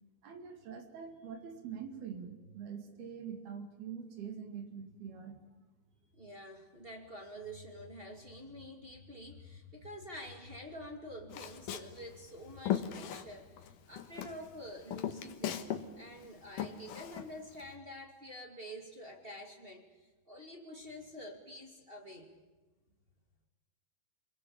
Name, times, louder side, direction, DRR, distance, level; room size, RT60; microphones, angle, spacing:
voice 1, 0.2-5.4, right 7 dB, 65° right, 5 dB, 4.1 m, -44 dB
voice 2, 6.1-15.7 15.9-19.9 20.3-22.3, equal, 20° right, 2 dB, 1.8 m, -48 dB
Walk footsteps, 11.3-13.7 14.0-17.7, left 10 dB, 65° left, 2.6 m, -38 dB
27.0 x 21.5 x 8.7 m, 1.2 s
omnidirectional pair, 4.8 m